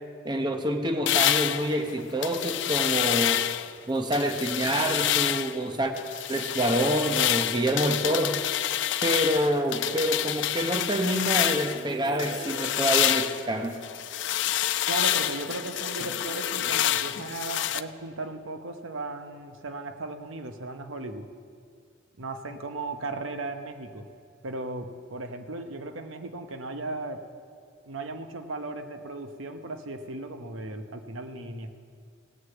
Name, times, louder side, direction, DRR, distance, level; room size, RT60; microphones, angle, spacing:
voice 1, 0.2-3.4 3.9-5.9 6.3-8.4 9.0-13.8, right 1 dB, 20° right, 5 dB, 0.8 m, -27 dB
sound 1, 1.1-3.7 4.1-5.6 6.0-11.8 12.2-17.8, left 12 dB, 65° left, 0.4 m, -27 dB
sound 2, 11.7-14.6 15.3-18.1, right 3 dB, 45° right, 1.0 m, -45 dB
voice 2, 14.9-21.3 22.2-24.1 24.4-27.2 27.9-31.7, right 2 dB, 90° right, 7 dB, 0.9 m, -36 dB
17.5 x 6.5 x 8.2 m, 2.2 s
head